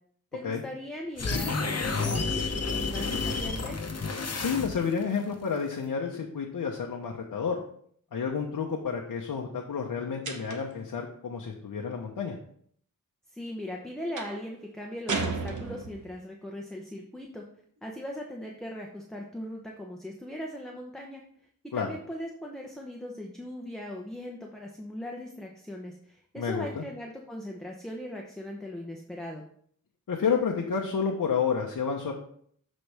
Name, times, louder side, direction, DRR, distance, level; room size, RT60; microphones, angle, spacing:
voice 1, 0.3-3.8 13.3-17.4 17.8-21.2 21.7-29.4, left 1 dB, ahead, 0 dB, 0.8 m, -39 dB
sound 1, 1.2-5.0, left 4 dB, 45° left, 0.9 m, -30 dB
voice 2, 4.3-7.6 8.1-12.4 21.7-21.9 26.4-26.8 30.1-32.1, left 6 dB, 80° left, 0 dB, 1.0 m, -30 dB
sound 2, 10.2-10.8 14.2-14.5 15.1-16.2, right 4 dB, 60° right, 1.1 m, -33 dB
12.5 x 4.3 x 3.4 m, 0.62 s
wide cardioid pair, 120°, 34 cm